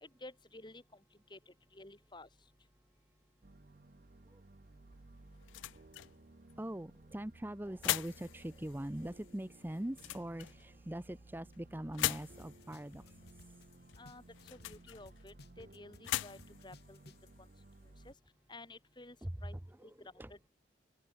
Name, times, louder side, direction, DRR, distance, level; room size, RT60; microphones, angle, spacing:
voice 1, 0.0-0.8 1.3-2.3 14.0-14.2 14.5-17.0 18.0-18.1 18.5-19.2 19.4-20.4, left 2 dB, 25° left, 3.4 m, -53 dB
sound 1, 3.4-18.1, right 2 dB, 50° right, 0.8 m, -59 dB
sound 2, 4.6-18.1, left 15 dB, 85° left, 0.3 m, -43 dB
voice 2, 6.6-13.6 19.2-19.3 19.8-19.9 20.2-20.3, right 1 dB, 10° right, 0.6 m, -42 dB
sound 3, 12.4-14.8 15.1-17.3, left 2 dB, 60° left, 2.4 m, -57 dB
open air
head